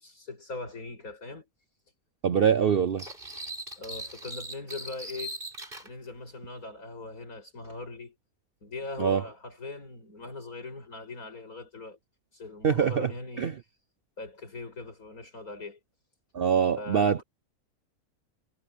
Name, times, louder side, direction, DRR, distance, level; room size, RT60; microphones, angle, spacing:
voice 1, 0.0-1.5 3.8-5.4 5.8-8.2 8.6-12.0 12.3-13.5 14.2-15.8 16.8-17.2, left 3 dB, 70° left, 7.8 m, -40 dB
voice 2, 2.2-3.0 9.0-9.2 12.6-13.1 13.4-13.5 16.3-17.2, right 7 dB, 55° right, 0.6 m, -23 dB
sound 1, 3.0-5.9, right 1 dB, 35° right, 5.2 m, -40 dB
omnidirectional pair, 1.6 m